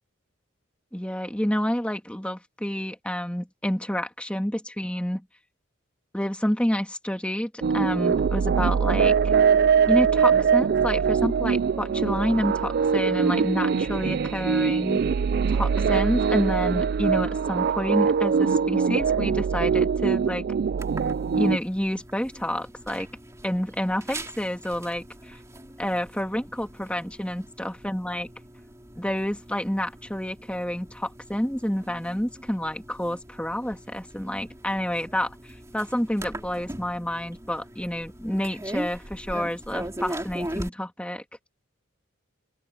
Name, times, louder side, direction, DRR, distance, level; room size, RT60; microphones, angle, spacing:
voice 1, 0.9-5.2 6.1-9.3 9.9-15.0 15.5-20.5 21.4-23.1 23.4-25.4 25.8-28.3 29.0-35.3 35.7-41.2, equal, 5° left, 2.5 m, -29 dB
sound 1, 7.6-21.6, right 6 dB, 50° right, 0.3 m, -22 dB
sound 2, 20.8-40.7, right 1 dB, 15° right, 3.0 m, -40 dB
open air
head